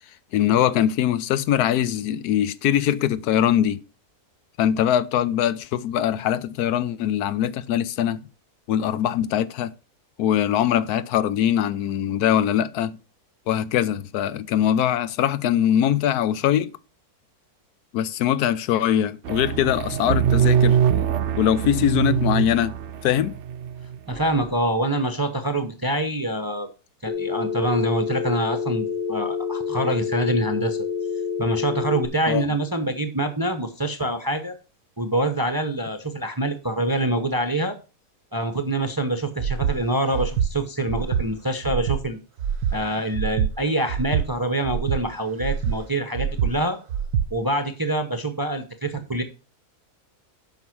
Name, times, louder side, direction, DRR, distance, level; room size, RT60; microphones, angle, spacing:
voice 1, 0.3-3.8 4.6-8.2 8.7-9.7 10.2-13.0 13.5-16.7 17.9-20.8 21.4-22.7 23.0-23.4 32.3-32.5, left 10 dB, 85° left, 1.2 m, -22 dB
sound 1, 19.2-24.2, right 8 dB, 60° right, 0.8 m, -23 dB
voice 2, 24.1-26.7 27.0-30.9 31.4-34.5 35.0-37.8 38.3-42.2 42.7-46.8 47.3-49.2, right 1 dB, 20° right, 0.6 m, -25 dB
Telephone, 27.1-32.1, left 6 dB, 25° left, 1.4 m, -28 dB
Breathing, 39.4-39.8 40.1-40.5 40.9-41.2 41.6-42.0 42.4-42.7 43.1-43.5 43.9-44.2 44.6-45.0 45.4-45.8 46.1-46.5 46.9-47.3, right 8 dB, 85° right, 1.3 m, -24 dB
7.9 x 5.8 x 5.9 m
omnidirectional pair, 1.6 m